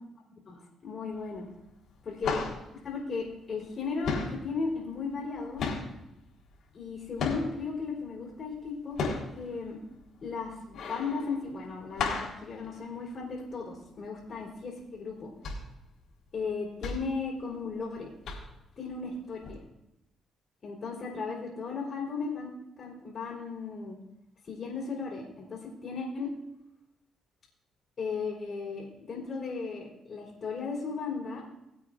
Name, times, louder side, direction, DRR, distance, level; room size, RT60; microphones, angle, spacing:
voice 1, 0.5-1.5 2.0-2.4 2.8-5.6 6.7-9.8 10.2-15.3 16.3-18.1 18.8-19.6 20.6-22.5 22.8-24.0 24.5-26.3 28.0-31.4, left 4 dB, 50° left, -7 dB, 3.9 m, -36 dB
sound 1, 1.1-1.6 1.8-3.8 4.0-7.8 8.2-13.5 13.9-14.0 14.3-14.6 15.1-17.9 18.2-18.7 19.4-19.5, left 4 dB, 70° left, 4.0 m, -35 dB
22.0 x 8.4 x 2.6 m, 0.87 s
cardioid pair, 90°, 0 cm